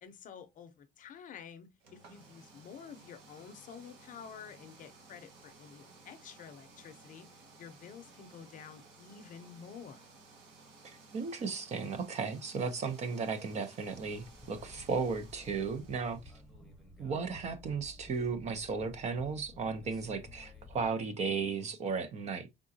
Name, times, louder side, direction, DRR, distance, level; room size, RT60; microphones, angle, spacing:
voice 1, 0.0-10.0, left 7 dB, 45° left, 0.7 m, -50 dB
sound 1, 1.8-16.4, right 3 dB, 85° right, 1.4 m, -57 dB
voice 2, 10.8-16.2 17.0-22.5, right 5 dB, 35° right, 0.6 m, -35 dB
sound 2, 13.9-20.9, left 2 dB, ahead, 1.0 m, -54 dB
4.9 x 3.7 x 2.7 m
cardioid pair, 165°, 19 cm